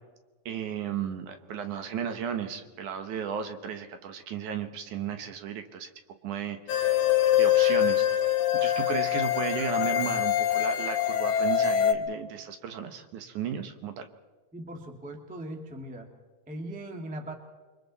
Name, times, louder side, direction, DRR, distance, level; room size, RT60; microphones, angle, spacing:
voice 1, 0.5-5.9 6.2-7.1 7.4-8.2 8.6-14.1, right 8 dB, 70° right, 7 dB, 2.4 m, -34 dB
sound 1, 6.7-11.9, left 11 dB, 80° left, 2.6 m, -24 dB
voice 2, 14.5-16.1 16.5-17.3, right 1 dB, 5° right, 3 dB, 0.9 m, -39 dB
29.0 x 23.0 x 4.1 m, 1.3 s
omnidirectional pair, 3.9 m